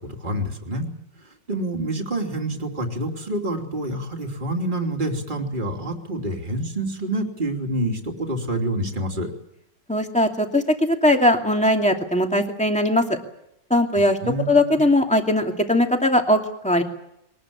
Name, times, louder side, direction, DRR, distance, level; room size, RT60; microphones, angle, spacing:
voice 1, 0.2-0.9 1.5-9.3 14.2-14.8, right 1 dB, 25° right, 2 dB, 3.1 m, -27 dB
voice 2, 9.9-13.2 13.7-14.2 14.5-16.8, left 1 dB, 5° left, 3 dB, 2.4 m, -20 dB
22.5 x 19.5 x 8.7 m, 0.78 s
omnidirectional pair, 1.9 m